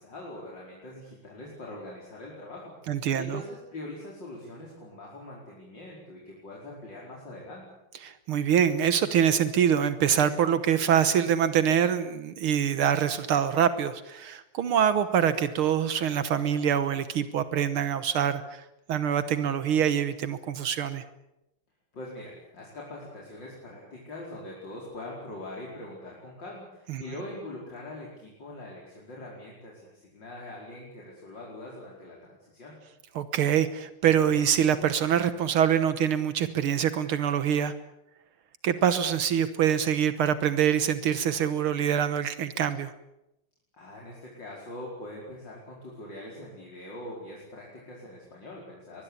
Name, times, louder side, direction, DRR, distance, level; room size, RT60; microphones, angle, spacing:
voice 1, 0.0-7.7 21.9-32.8 43.7-49.0, left 1 dB, 55° left, -3 dB, 5.7 m, -42 dB
voice 2, 2.9-3.4 8.0-21.0 26.9-27.0 33.2-37.7 38.6-42.9, right 8 dB, 75° right, 12 dB, 2.0 m, -25 dB
23.5 x 21.0 x 8.6 m, 0.87 s
omnidirectional pair, 2.4 m